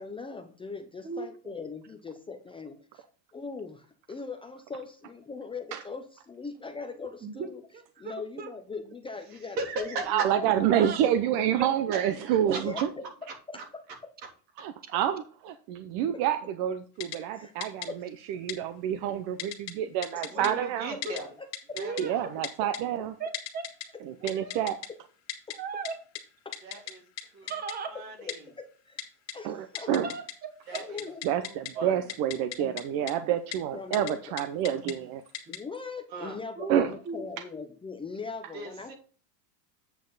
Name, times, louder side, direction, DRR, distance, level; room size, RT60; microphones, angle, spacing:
voice 1, 0.0-3.0 3.3-7.6 8.0-10.7 12.6-13.1 13.5-13.8 17.3-17.5 17.9-18.0 20.1-20.4 20.9-21.9 25.5-25.6 26.4-26.6 27.4-27.5 28.2-29.0 29.3-29.9 30.7-31.3 32.6-32.7 33.7-34.2 35.5-38.9, left 4 dB, 10° left, 0.5 m, -40 dB
voice 2, 7.2-8.5 10.7-11.0 11.6-11.7 20.4-20.7 21.7-22.2 23.2-23.6 25.6-25.9 27.4-27.9 30.0-30.2 31.7-31.8 36.6-37.3, right 4 dB, 20° right, 1.2 m, -36 dB
voice 3, 9.6-10.3 11.9-12.8 13.6-13.7 20.3-21.3 21.8-22.4 24.2-24.7 26.6-27.5 27.9-28.5 30.7-31.1 31.4-32.1 36.1-36.4 38.5-38.9, right 3 dB, 80° right, 3.4 m, -38 dB
voice 4, 10.1-12.7 14.6-20.9 22.0-23.1 24.0-24.8 29.4-30.1 31.2-35.2 36.7-36.9, right 10 dB, 45° right, 0.7 m, -28 dB
Typing, 17.0-17.2 17.6-17.9 18.5-18.6 19.4-19.7 20.0-20.5 21.0-21.2 21.5-22.0 22.4-22.8 23.3-23.9 24.3-24.9 25.3-25.6 25.9-26.0 26.2-26.3 26.5-26.9 27.2-27.3 27.5-27.7 28.3-28.4 29.0-29.3 29.8-30.3 30.6-31.7 32.1-32.8 33.1-33.2 33.5-33.6 33.9-34.1 34.4-34.9 35.3-35.6, left 10 dB, 30° left, 1.9 m, -36 dB
8.4 x 6.5 x 3.9 m
supercardioid pair, 135°, 50 cm